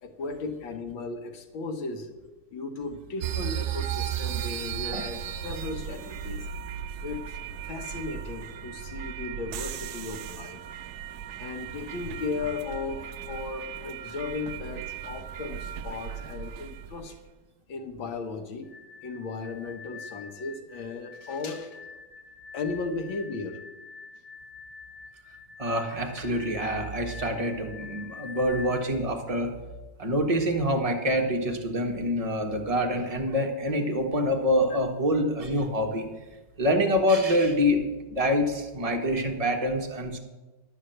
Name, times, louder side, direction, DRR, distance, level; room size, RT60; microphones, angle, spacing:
voice 1, 0.0-2.1 2.5-5.2 5.4-6.5 7.0-7.4 7.6-10.7 11.4-17.2 17.7-18.7 19.0-21.8 22.5-23.6, left 4 dB, 65° left, 7 dB, 1.9 m, -36 dB
sound 1, 3.2-17.2, right 9 dB, 85° right, 0.8 m, -36 dB
sound 2, 18.6-28.8, left 5 dB, 5° left, 1.3 m, -45 dB
voice 2, 25.6-29.5 30.0-36.1 36.6-40.2, equal, 25° right, 3 dB, 0.9 m, -26 dB
12.0 x 6.5 x 7.8 m, 1.1 s
omnidirectional pair, 2.4 m